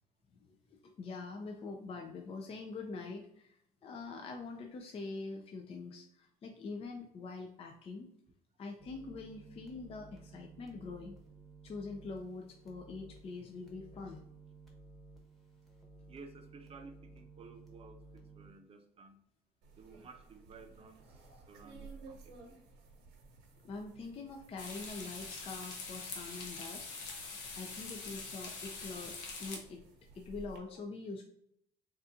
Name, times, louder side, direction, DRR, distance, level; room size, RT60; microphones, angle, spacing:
voice 1, 0.4-8.1 8.6-11.2 11.6-14.2 23.6-26.9 27.6-29.8 30.1-31.3, left 3 dB, 35° left, 3 dB, 0.4 m, -44 dB
sound 1, 8.8-18.5, right 3 dB, ahead, 1.0 m, -56 dB
voice 2, 16.1-19.3 19.8-22.6, right 4 dB, 35° right, 6 dB, 0.6 m, -55 dB
sound 2, 19.6-30.6, right 4 dB, 85° right, 0.9 m, -56 dB
sound 3, 24.6-29.6, left 4 dB, 90° left, 0.8 m, -44 dB
3.9 x 2.3 x 2.6 m, 0.73 s
cardioid pair, 110°, 17 cm